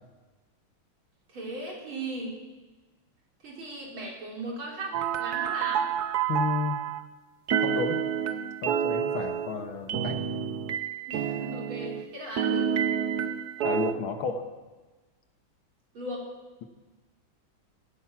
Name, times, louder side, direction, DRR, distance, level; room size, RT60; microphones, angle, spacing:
voice 1, 1.3-2.3 3.4-5.9 11.1-12.7 15.9-16.3, right 1 dB, 85° right, -2 dB, 4.5 m, -37 dB
sound 1, 4.9-7.0 7.5-12.1 12.4-13.9, right 8 dB, 60° right, 1.3 m, -29 dB
voice 2, 6.3-6.8 7.6-8.0 8.6-10.2 13.6-14.5, left 5 dB, 85° left, 6 dB, 2.1 m, -31 dB
16.0 x 10.5 x 7.4 m, 1.2 s
omnidirectional pair, 2.2 m